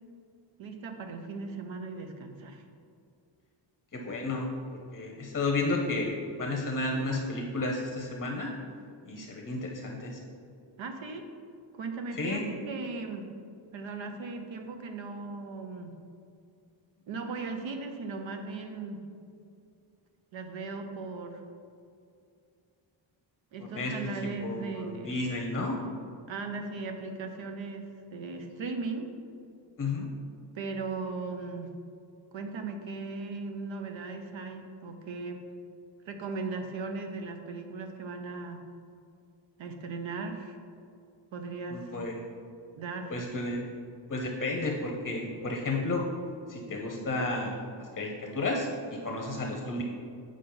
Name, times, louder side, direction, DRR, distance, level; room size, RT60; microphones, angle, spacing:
voice 1, 0.6-2.6 10.8-11.3 11.7-13.3 13.7-15.9 17.1-19.0 20.3-21.4 23.5-25.1 26.3-29.1 30.5-31.7 32.3-35.4 36.1-38.6 39.6-40.6 41.3-42.0 42.7-43.2, right 4 dB, 75° right, 5 dB, 0.9 m, -37 dB
voice 2, 3.9-4.5 4.9-8.5 9.1-10.2 12.1-12.4 23.7-23.9 24.4-25.8 29.8-30.1 41.7-42.1 43.1-43.6 44.1-46.0 46.5-47.6 48.0-48.7 49.0-49.8, left 2 dB, 30° left, 1 dB, 0.7 m, -32 dB
8.5 x 5.0 x 3.9 m, 2.4 s
wide cardioid pair, 160°, 46 cm